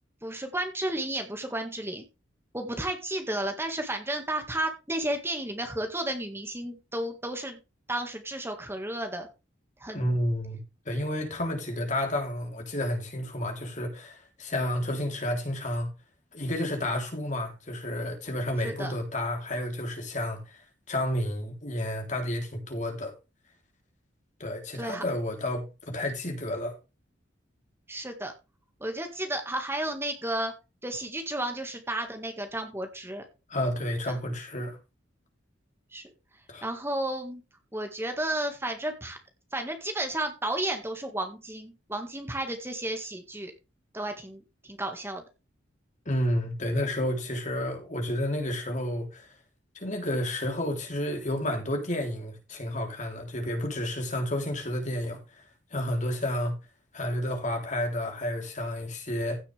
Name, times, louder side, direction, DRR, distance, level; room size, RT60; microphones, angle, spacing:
voice 1, 0.2-2.1 2.5-7.6 7.9-9.3 9.8-10.2 18.6-18.9 24.7-25.0 27.9-28.3 28.8-30.5 30.8-33.2 34.1-34.2 35.9-36.1 36.6-37.4 37.7-39.2 39.5-43.5 43.9-45.2, right 1 dB, 15° right, 1.9 m, -32 dB
voice 2, 9.9-10.6 10.9-15.9 16.3-20.4 20.9-23.1 24.4-26.8 33.5-34.8 36.5-36.7 46.1-49.3 49.8-55.2 55.7-56.5 56.9-59.4, left 1 dB, 40° left, 3.6 m, -31 dB
16.0 x 6.9 x 3.5 m
head